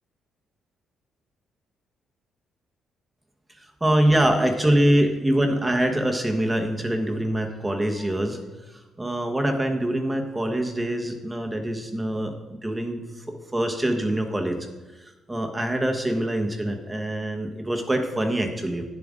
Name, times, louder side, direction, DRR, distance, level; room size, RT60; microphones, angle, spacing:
voice 1, 3.8-8.4 8.7-14.6 15.0-18.8, right 1 dB, 15° right, 3 dB, 1.2 m, -24 dB
10.5 x 7.3 x 3.8 m, 1.2 s
cardioid pair, 90°, 0 cm